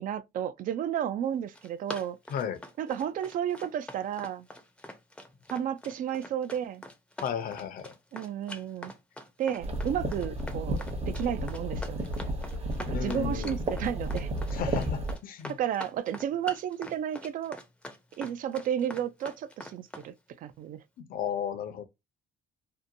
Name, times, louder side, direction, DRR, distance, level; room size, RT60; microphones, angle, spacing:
voice 1, 0.0-2.2 2.8-4.5 5.5-6.8 8.1-8.9 9.4-12.0 12.8-14.3 15.5-17.6 18.2-20.8, right 10 dB, 55° right, 0.4 m, -32 dB
Run, 1.3-20.1, left 1 dB, 5° left, 0.5 m, -44 dB
voice 2, 7.2-7.9 12.9-13.6 14.5-15.5 21.0-21.8, left 8 dB, 60° left, 0.6 m, -34 dB
sound 1, 9.6-15.2, right 1 dB, 40° right, 0.9 m, -32 dB
2.8 x 2.2 x 2.6 m
cardioid pair, 110°, 17 cm